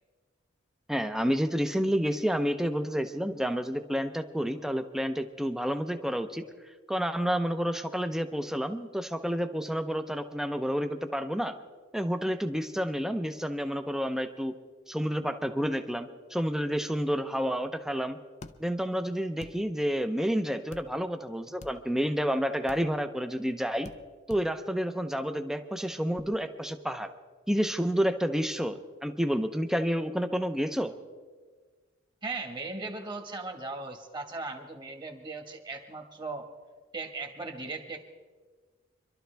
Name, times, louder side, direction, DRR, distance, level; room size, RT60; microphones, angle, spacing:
voice 1, 0.9-6.4 6.9-11.6 11.9-14.5 14.9-18.2 18.6-23.9 24.3-27.1 27.5-30.9, equal, ahead, 8 dB, 0.7 m, -29 dB
sound 1, 18.4-18.5 19.4-19.6 20.7-20.9 21.6-21.8 22.7-22.8 23.8-24.0 24.3-24.4, left 3 dB, 35° left, 0.6 m, -45 dB
voice 2, 32.2-36.5 36.9-38.0, right 3 dB, 25° right, 4 dB, 1.5 m, -38 dB
25.0 x 12.5 x 3.4 m, 1.4 s
head